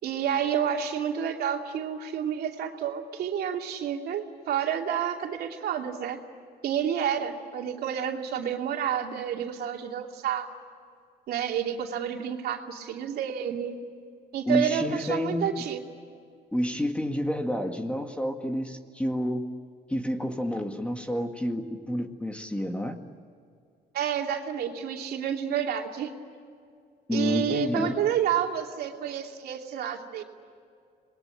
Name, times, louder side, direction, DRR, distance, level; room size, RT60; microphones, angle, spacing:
voice 1, 0.0-6.2 6.6-10.5 11.3-13.8 14.3-15.8 23.9-26.1 27.1-30.2, right 9 dB, 70° right, 2 dB, 2.8 m, -29 dB
voice 2, 14.5-15.5 16.5-19.5 19.9-23.0 27.1-28.0, equal, 5° left, 5 dB, 2.0 m, -29 dB
27.5 x 21.0 x 8.7 m, 2.3 s
cardioid pair, 110°, 17 cm